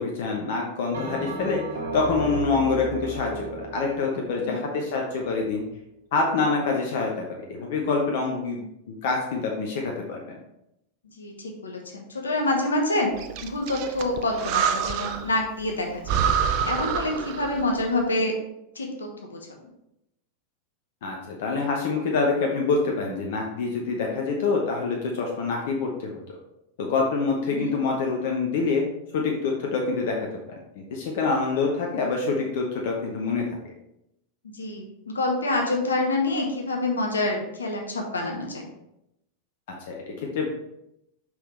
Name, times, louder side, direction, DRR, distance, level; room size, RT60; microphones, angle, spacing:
voice 1, 0.0-1.6 1.9-5.6 6.1-10.4 21.0-26.4 26.8-28.8 29.1-30.3 30.8-33.4 39.9-40.5, left 4 dB, 55° left, 0 dB, 1.0 m, -26 dB
Bell, 0.9-5.5, right 2 dB, 65° right, 1.2 m, -34 dB
voice 2, 11.2-13.1 13.4-16.2 16.7-18.3 18.7-19.4 27.5-27.7 34.5-38.7, left 2 dB, 75° left, 2 dB, 1.2 m, -27 dB
Breathing, 13.2-15.4 15.7-15.8 16.0-17.7, right 7 dB, 45° right, 0.5 m, -27 dB
6.1 x 5.6 x 3.3 m, 0.83 s
figure-of-eight pair, 90°, 0 cm